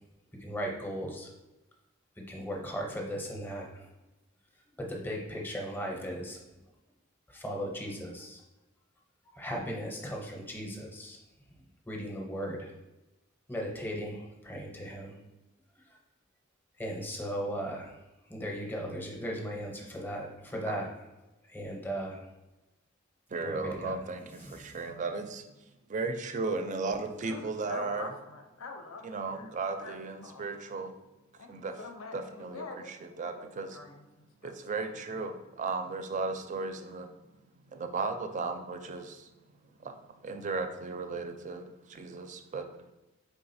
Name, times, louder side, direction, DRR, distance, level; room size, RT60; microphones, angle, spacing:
voice 1, 0.4-1.3 2.3-3.9 4.8-6.4 7.3-8.4 9.2-11.2 11.9-12.7 13.5-15.1 16.8-18.0 18.3-20.9 21.5-22.2 23.4-24.0 24.4-24.8, equal, 10° left, 0 dB, 0.6 m, -37 dB
voice 2, 23.3-25.4 25.9-28.1 29.0-30.9 31.5-31.8 32.1-33.8 34.4-37.1 37.6-39.3 39.8-42.7, right 4 dB, 35° right, 6 dB, 0.4 m, -35 dB
voice 3, 27.2-30.4 31.4-31.5 31.8-32.9 33.2-34.6, left 3 dB, 80° left, 5 dB, 0.6 m, -45 dB
4.7 x 3.6 x 2.6 m, 1.0 s
head